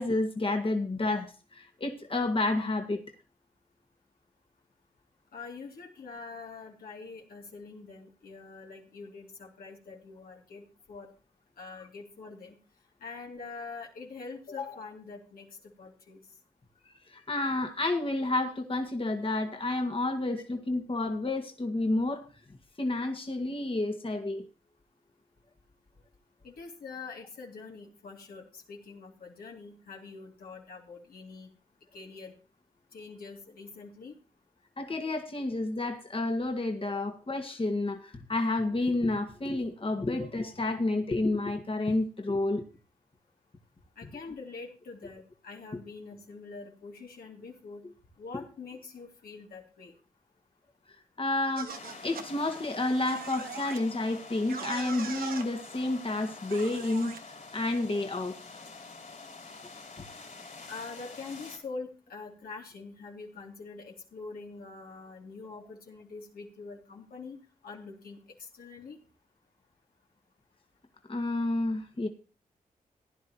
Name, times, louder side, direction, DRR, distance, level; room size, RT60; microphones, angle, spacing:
voice 1, 0.0-3.0 17.1-22.3 22.8-24.4 34.8-42.6 51.2-51.7 52.0-57.1 57.5-58.4 71.1-72.1, left 2 dB, 35° left, 4 dB, 1.7 m, -30 dB
voice 2, 5.3-11.1 11.6-12.6 13.0-16.2 26.4-31.5 31.9-32.3 32.9-34.1 44.0-47.8 48.2-49.9 60.7-69.0, left 4 dB, 80° left, 0 dB, 2.8 m, -44 dB
sound 1, 51.6-52.3 53.0-53.8 54.5-55.5 56.5-57.2, right 6 dB, 75° right, 1.2 m, -40 dB
sound 2, 51.7-61.6, left 3 dB, 55° left, 3.8 m, -47 dB
16.5 x 10.5 x 3.0 m, 0.35 s
cardioid pair, 45°, 15 cm